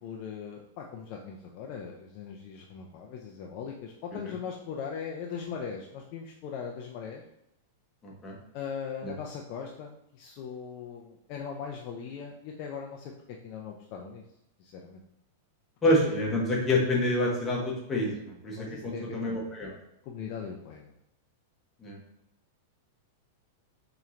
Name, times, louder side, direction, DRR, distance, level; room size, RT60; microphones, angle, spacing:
voice 1, 0.0-7.2 8.5-13.1 13.4-14.2 14.6-15.0 16.0-16.1 18.5-19.4 20.0-20.9, left 6 dB, 35° left, 0 dB, 0.4 m, -39 dB
voice 2, 8.0-8.4 9.0-9.1 15.8-19.7 21.8-22.0, left 1 dB, 10° left, -3 dB, 0.8 m, -27 dB
4.3 x 2.9 x 2.4 m, 0.82 s
supercardioid pair, 165°, 0 cm